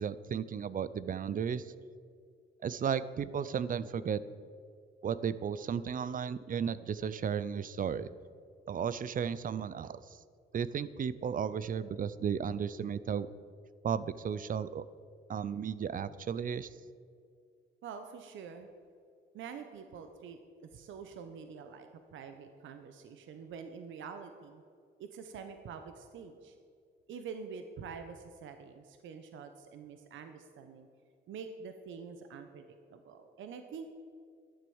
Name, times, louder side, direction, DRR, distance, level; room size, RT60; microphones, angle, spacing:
voice 1, 0.0-1.7 2.6-4.2 5.0-8.1 8.7-10.2 10.5-13.3 13.8-14.8 15.3-16.7, right 7 dB, 45° right, 16 dB, 0.5 m, -34 dB
voice 2, 17.8-18.7 19.3-24.6 25.0-26.6 27.1-30.9 31.3-33.9, right 6 dB, 75° right, 7 dB, 0.9 m, -46 dB
12.0 x 7.8 x 7.1 m, 2.2 s
cardioid pair, 90°, 20 cm